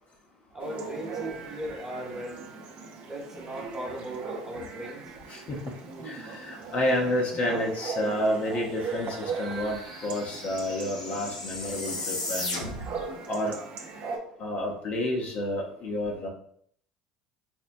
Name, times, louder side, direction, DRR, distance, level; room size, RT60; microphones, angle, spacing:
voice 1, 0.5-2.5 3.0-5.0, right 1 dB, 10° right, -1 dB, 1.1 m, -37 dB
Chatter / Bark / Livestock farm animals working animals, 0.6-14.2, right 4 dB, 55° right, 0.6 m, -39 dB
voice 2, 6.0-12.6 13.3-13.5 14.4-16.3, left 1 dB, 45° left, -1 dB, 0.7 m, -30 dB
sound 1, 8.5-8.6 8.8-13.0, left 2 dB, 90° left, 0.8 m, -36 dB
4.3 x 2.1 x 2.5 m, 0.63 s
hypercardioid pair, 70°, 3 cm